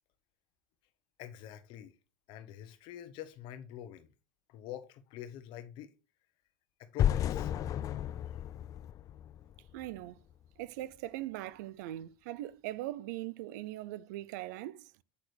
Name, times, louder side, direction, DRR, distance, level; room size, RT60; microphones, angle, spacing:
voice 1, 1.2-1.9 2.3-4.1 4.5-5.9 6.8-7.5, left 11 dB, 60° left, 0.9 m, -46 dB
sound 1, 7.0-10.0, left 10 dB, 40° left, 0.3 m, -32 dB
voice 2, 9.7-10.2 10.6-14.9, right 15 dB, 85° right, 0.4 m, -40 dB
8.4 x 6.1 x 3.3 m
supercardioid pair, 120°, 9 cm